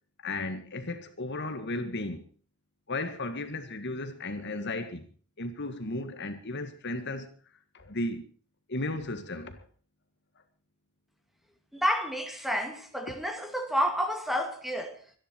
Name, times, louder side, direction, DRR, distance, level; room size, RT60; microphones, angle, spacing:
voice 1, 0.2-2.2 2.9-5.0 5.4-7.3 7.7-8.2 8.7-9.7 13.1-13.2, left 2 dB, 50° left, 1.8 m, -34 dB
voice 2, 11.7-15.0, equal, ahead, 2.3 m, -30 dB
25.5 x 11.0 x 4.5 m
head